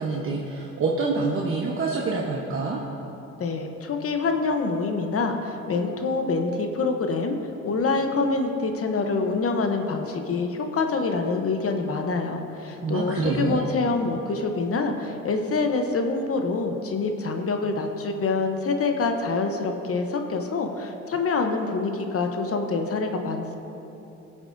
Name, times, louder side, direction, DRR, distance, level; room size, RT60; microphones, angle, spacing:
voice 1, 0.0-2.8 12.8-13.7, right 3 dB, 45° right, -2 dB, 1.0 m, -26 dB
voice 2, 3.4-7.4 7.6-23.6, left 3 dB, 50° left, 5 dB, 0.9 m, -26 dB
18.0 x 7.2 x 2.7 m, 3.0 s
cardioid pair, 90°, 30 cm